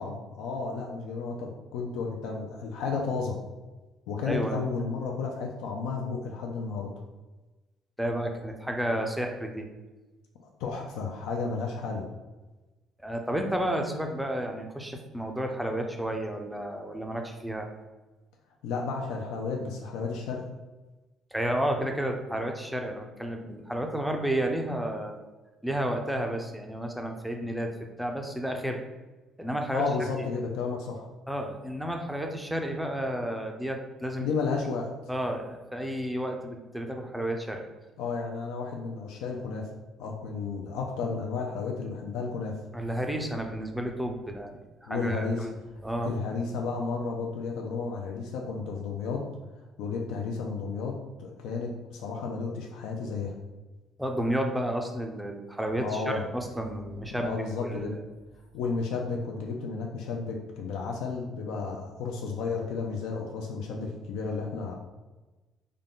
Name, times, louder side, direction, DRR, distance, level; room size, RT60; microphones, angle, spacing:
voice 1, 0.0-3.4 4.1-6.9 10.6-12.1 18.6-20.5 29.7-31.1 34.2-34.9 38.0-39.7 40.0-42.6 44.9-45.5 46.0-49.3 49.8-53.4 55.8-56.2 57.1-57.9 58.5-64.7, left 4 dB, 90° left, 1 dB, 0.4 m, -32 dB
voice 2, 4.3-4.6 8.0-9.7 13.0-17.7 21.3-25.1 25.6-27.7 28.0-28.8 29.4-29.8 30.2-30.3 31.3-34.3 35.1-37.6 42.7-45.6 45.8-46.1 54.0-58.0, right 1 dB, ahead, 3 dB, 0.4 m, -31 dB
3.7 x 2.2 x 3.7 m, 1.2 s
cardioid pair, 155°, 0 cm